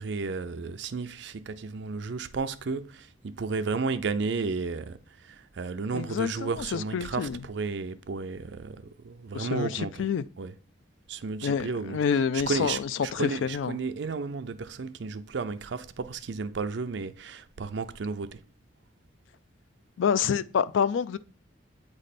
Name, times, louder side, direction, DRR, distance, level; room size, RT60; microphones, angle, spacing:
voice 1, 0.0-10.1 10.4-10.5 11.1-12.0 12.3-18.4, right 4 dB, 65° right, 0.5 m, -33 dB
voice 2, 5.9-7.4 9.3-10.2 11.4-13.7 20.0-21.2, left 7 dB, 70° left, 0.3 m, -28 dB
8.2 x 3.2 x 4.1 m
head